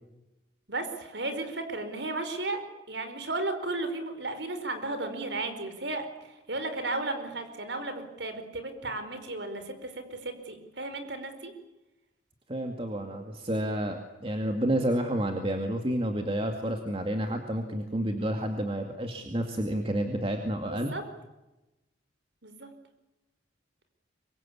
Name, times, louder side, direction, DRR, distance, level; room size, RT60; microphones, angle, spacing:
voice 1, 0.7-6.1 6.5-11.5 20.6-21.0 22.4-22.7, right 2 dB, 65° right, 8 dB, 4.7 m, -34 dB
voice 2, 12.5-20.9, right 1 dB, 30° right, 5 dB, 2.3 m, -30 dB
26.0 x 23.5 x 8.7 m, 1.0 s
head